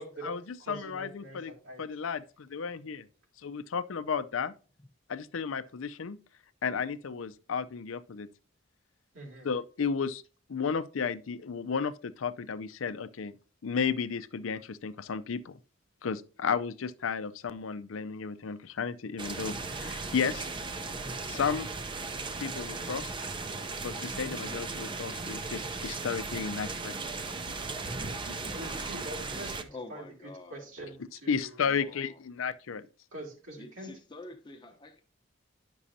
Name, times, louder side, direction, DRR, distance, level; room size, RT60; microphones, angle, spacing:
voice 1, 0.0-1.8 9.1-9.5 28.6-31.6 33.1-33.9, right 1 dB, 85° right, 2.5 m, -44 dB
voice 2, 0.7-1.5 1.8-2.2 2.5-3.0 3.4-4.5 5.1-6.2 6.6-8.3 9.4-10.2 10.5-13.3 13.6-15.5 16.0-20.5 21.3-21.7 22.4-23.1 23.8-27.0 31.3-32.9, left 6 dB, 85° left, 0.5 m, -33 dB
sound 1, 19.2-29.6, right 3 dB, 25° right, 0.6 m, -37 dB
voice 3, 28.1-28.6 29.7-30.7 31.6-32.2 33.6-35.0, left 2 dB, 25° left, 0.8 m, -47 dB
9.9 x 6.1 x 2.7 m
head